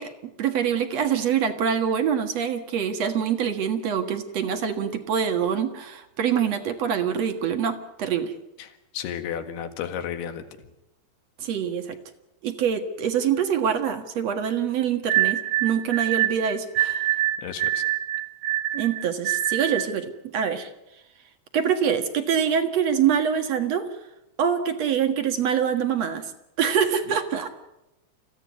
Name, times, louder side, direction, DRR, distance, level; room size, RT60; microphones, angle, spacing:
voice 1, 0.0-8.3 11.4-12.0 12.4-17.0 18.7-20.7 21.5-23.9 24.4-26.3 26.6-27.5, right 8 dB, 50° right, 7 dB, 2.3 m, -25 dB
voice 2, 8.6-10.5 17.4-17.8, left 9 dB, 80° left, 8 dB, 3.7 m, -33 dB
sound 1, 15.1-20.0, right 13 dB, 70° right, 2.9 m, -25 dB
27.5 x 16.0 x 9.5 m, 0.91 s
omnidirectional pair, 4.6 m